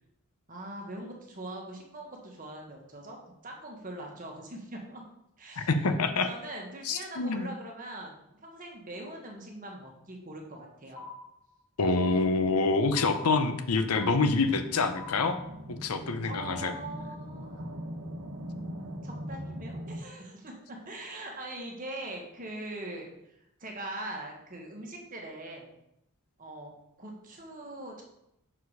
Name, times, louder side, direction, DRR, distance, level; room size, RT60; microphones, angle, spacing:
voice 1, 0.5-5.0 5.4-5.9 6.2-11.1 16.3-17.6 19.0-25.7 26.4-26.7 27.0-28.0, right 1 dB, 40° right, 0 dB, 1.4 m, -42 dB
voice 2, 5.6-6.3 6.9-7.5 11.8-15.4 15.8-16.7, left 3 dB, 85° left, 9 dB, 0.7 m, -26 dB
sound 1, 10.9-11.6 11.9-12.6 12.9-13.6 13.9-14.6 14.9-15.6, left 3 dB, 20° left, 1.6 m, -45 dB
sound 2, 14.3-20.0, equal, 85° right, 1.0 m, -41 dB
6.2 x 4.7 x 4.8 m, 0.81 s
head